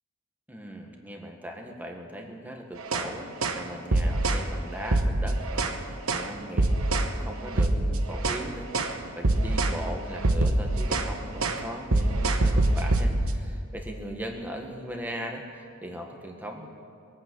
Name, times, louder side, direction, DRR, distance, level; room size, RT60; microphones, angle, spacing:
voice 1, 0.5-16.7, equal, 10° right, 2 dB, 1.6 m, -39 dB
sound 1, 2.8-3.1 3.4-3.6 3.9-4.5 4.8-5.8 6.1-6.3 6.6-7.1 7.5-8.5 8.7-9.0 9.2-9.8 10.1-11.1 11.4-11.6 11.9-13.4, right 2 dB, 75° right, 1.1 m, -24 dB
23.0 x 8.8 x 6.2 m, 2.5 s
head